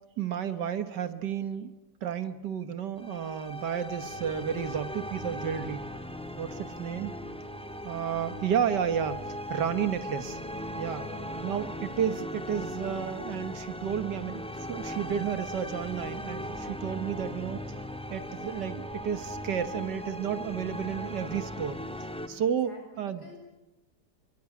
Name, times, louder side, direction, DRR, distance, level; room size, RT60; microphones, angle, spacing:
voice 1, 0.2-1.7 2.0-5.9 6.4-7.1 7.8-10.4 10.8-11.0 11.4-17.6 18.1-23.2, right 8 dB, 85° right, 10 dB, 1.9 m, -32 dB
sound 1, 3.0-22.3, equal, 5° left, 1.7 m, -38 dB
voice 2, 11.0-11.9 22.4-23.4, left 2 dB, 70° left, 2 dB, 7.9 m, -50 dB
28.5 x 24.5 x 8.4 m, 0.98 s
omnidirectional pair, 1.8 m